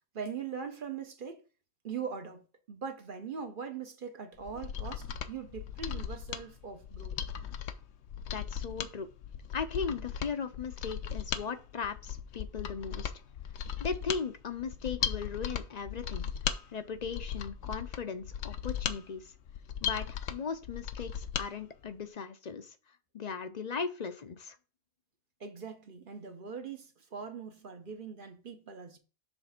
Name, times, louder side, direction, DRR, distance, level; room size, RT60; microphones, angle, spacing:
voice 1, 0.1-1.4 1.8-7.2 25.4-29.0, right 6 dB, 50° right, 1.0 m, -41 dB
Mechanisms, 4.4-21.5 21.8-21.9, left 8 dB, 75° left, 0.9 m, -37 dB
voice 2, 8.3-9.1 9.5-13.1 13.8-16.3 16.7-19.3 19.8-22.7 23.1-24.6, left 5 dB, 45° left, 0.6 m, -38 dB
7.1 x 3.3 x 5.8 m
omnidirectional pair, 1.2 m